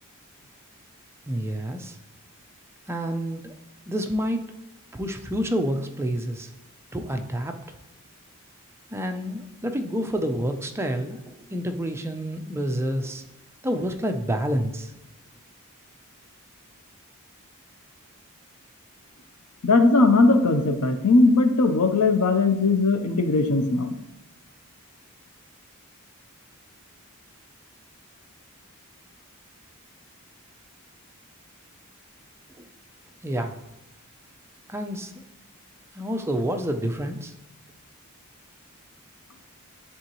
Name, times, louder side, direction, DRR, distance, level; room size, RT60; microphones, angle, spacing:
voice 1, 1.3-2.0 2.9-3.5 3.9-4.4 4.9-6.5 6.9-7.6 8.9-13.2 13.6-14.9 32.6-32.7 33.2-33.6 34.7-35.1 35.9-37.3, equal, 10° right, 6 dB, 0.4 m, -28 dB
voice 2, 19.6-23.9, left 3 dB, 90° left, 8 dB, 0.7 m, -19 dB
10.5 x 3.7 x 3.0 m, 0.87 s
head